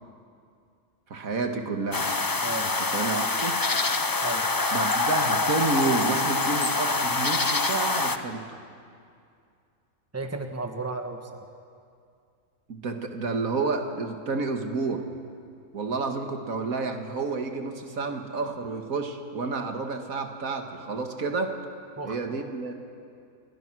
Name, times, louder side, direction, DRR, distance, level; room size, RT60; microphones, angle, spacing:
voice 1, 1.1-2.0 2.8-3.5 4.7-8.4 12.7-15.1 15.7-21.6 22.0-22.7, right 4 dB, 80° right, 5 dB, 2.1 m, -30 dB
sound 1, 1.9-8.2, left 3 dB, 25° left, 0.5 m, -25 dB
voice 2, 2.4-2.7 4.2-4.5 10.1-11.5 22.0-22.2, right 3 dB, 10° right, 5 dB, 1.5 m, -34 dB
29.0 x 21.0 x 6.2 m, 2.4 s
omnidirectional pair, 1.4 m